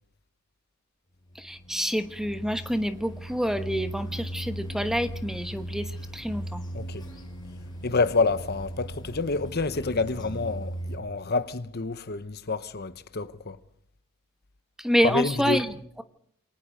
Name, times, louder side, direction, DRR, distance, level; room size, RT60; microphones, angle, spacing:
sound 1, 1.3-11.0, right 1 dB, 20° left, 6.9 m, -38 dB
voice 1, 1.4-6.6 14.8-16.0, equal, ahead, 1.1 m, -28 dB
voice 2, 6.7-7.0 7.8-13.6 15.0-15.6, left 3 dB, 50° left, 1.0 m, -28 dB
28.0 x 23.5 x 5.2 m
head